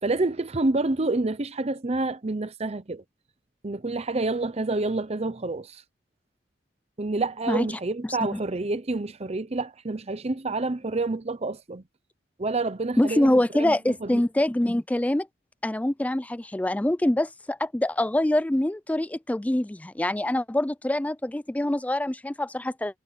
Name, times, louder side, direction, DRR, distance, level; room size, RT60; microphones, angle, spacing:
voice 1, 0.0-3.0 3.6-5.8 7.0-11.8 12.4-14.2, right 2 dB, 35° right, 0.8 m, -28 dB
voice 2, 8.0-8.4 13.0-15.3 15.6-23.0, left 1 dB, 10° left, 0.4 m, -25 dB
head